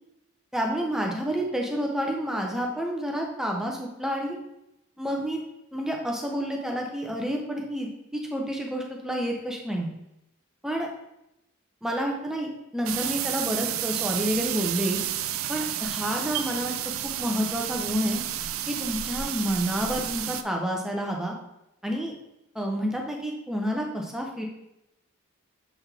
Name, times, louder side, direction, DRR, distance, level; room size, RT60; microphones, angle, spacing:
voice 1, 0.5-4.4 5.0-5.4 5.7-7.9 8.3-9.9 10.6-10.9 11.8-15.0 15.5-16.7 17.0-18.2 18.7-21.3 21.8-22.1 22.5-24.4, equal, ahead, 0 dB, 0.8 m, -29 dB
sound 1, 12.9-20.4, right 11 dB, 75° right, 0.4 m, -31 dB
7.2 x 3.9 x 3.5 m, 0.85 s
head